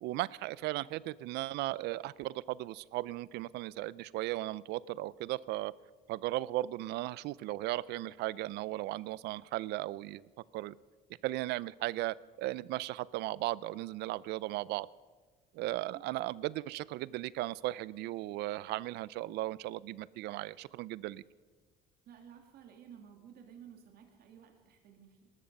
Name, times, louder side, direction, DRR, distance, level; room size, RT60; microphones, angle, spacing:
voice 1, 0.0-5.7 6.1-10.8 11.2-14.9 15.5-21.2, right 17 dB, 85° right, 21 dB, 0.5 m, -36 dB
voice 2, 22.1-25.3, right 8 dB, 65° right, 3 dB, 2.3 m, -54 dB
19.0 x 13.0 x 5.3 m, 1.4 s
cardioid pair, 110°, 17 cm